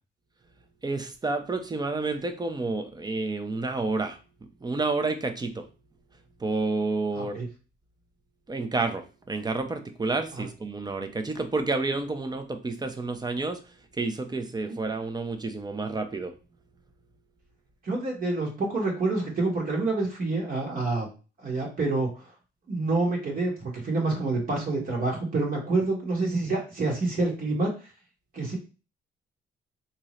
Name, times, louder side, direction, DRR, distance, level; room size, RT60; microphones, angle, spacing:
voice 1, 0.8-4.2 4.6-5.7 6.4-7.4 8.5-13.6 14.0-16.3, right 3 dB, 20° right, 7 dB, 0.6 m, -29 dB
voice 2, 7.1-7.5 10.4-10.5 14.7-14.8 17.8-21.1 21.4-22.1 22.7-27.7 28.3-28.6, right 3 dB, 45° right, -2 dB, 1.5 m, -27 dB
3.6 x 2.9 x 3.1 m, 0.33 s
cardioid pair, 90°, 20 cm